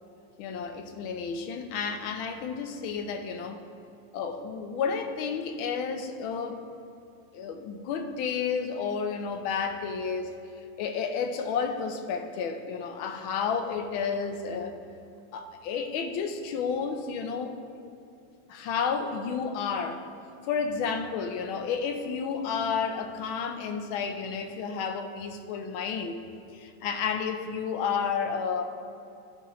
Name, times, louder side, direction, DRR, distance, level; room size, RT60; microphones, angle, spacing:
voice 1, 0.4-3.6 4.1-6.6 7.3-10.3 10.8-14.8 15.3-17.6 18.5-20.0 20.5-26.2 26.5-28.6, left 6 dB, 75° left, 6 dB, 1.4 m, -31 dB
13.0 x 7.3 x 3.0 m, 2.6 s
omnidirectional pair, 2.3 m